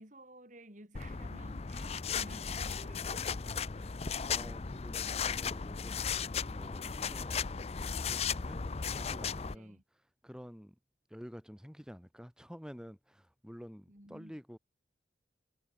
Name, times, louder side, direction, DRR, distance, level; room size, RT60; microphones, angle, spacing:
voice 1, 0.0-4.2 9.5-9.8 13.9-14.4, right 1 dB, 45° right, 7.1 m, -54 dB
sound 1, 0.9-9.5, left 6 dB, 35° left, 0.5 m, -36 dB
voice 2, 4.3-7.4 7.8-8.6 8.9-9.8 10.2-10.8 11.1-14.6, equal, 5° right, 3.9 m, -50 dB
head